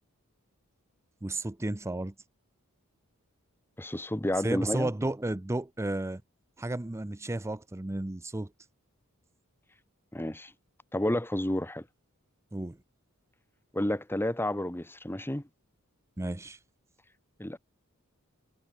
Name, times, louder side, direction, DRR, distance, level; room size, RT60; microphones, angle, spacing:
voice 1, 1.2-2.1 4.4-6.2 6.6-8.5 12.5-12.8 16.2-16.6, right 2 dB, 15° right, 0.5 m, -32 dB
voice 2, 3.8-4.9 10.1-10.5 10.9-11.8 13.7-15.4 17.4-17.6, left 1 dB, 10° left, 1.6 m, -30 dB
head